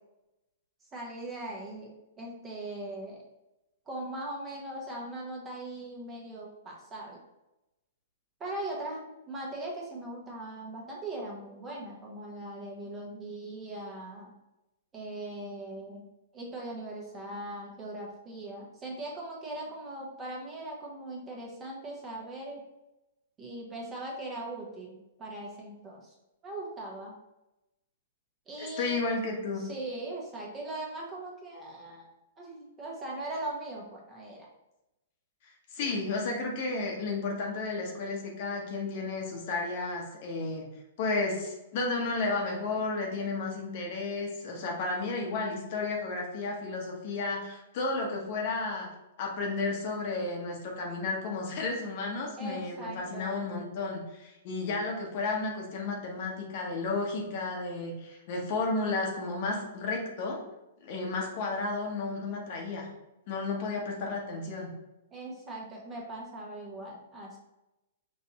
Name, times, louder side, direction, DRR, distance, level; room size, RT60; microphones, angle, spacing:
voice 1, 0.9-1.9 2.2-3.2 3.9-7.2 8.4-14.3 14.9-16.1 16.3-22.6 23.4-26.1 26.4-27.1 28.5-29.0 29.6-32.1 32.4-34.5 35.8-35.9 36.3-36.5 52.4-53.4 65.1-67.4, right 1 dB, 20° right, -3 dB, 1.1 m, -40 dB
voice 2, 28.8-29.6 35.7-40.7 41.0-48.9 49.2-60.4 60.8-62.9 63.3-64.7, left 3 dB, 50° left, 0 dB, 1.1 m, -32 dB
5.4 x 2.6 x 2.9 m, 0.95 s
hypercardioid pair, 115°, 0 cm